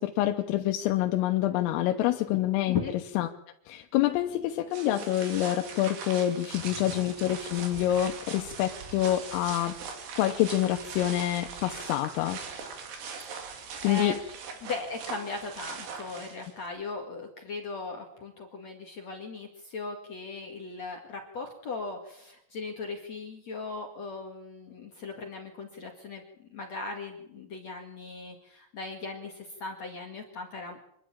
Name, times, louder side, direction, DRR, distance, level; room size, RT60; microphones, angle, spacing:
voice 1, 0.0-2.8 3.2-3.3 3.7-9.8 10.2-12.6 13.8-14.2, left 13 dB, 90° left, 5 dB, 3.6 m, -27 dB
sound 1, 4.7-16.7, right 5 dB, 60° right, 4.4 m, -41 dB
voice 2, 13.6-14.2 14.6-30.9, left 3 dB, 50° left, 1 dB, 2.2 m, -38 dB
26.0 x 11.5 x 8.8 m, 0.76 s
omnidirectional pair, 5.8 m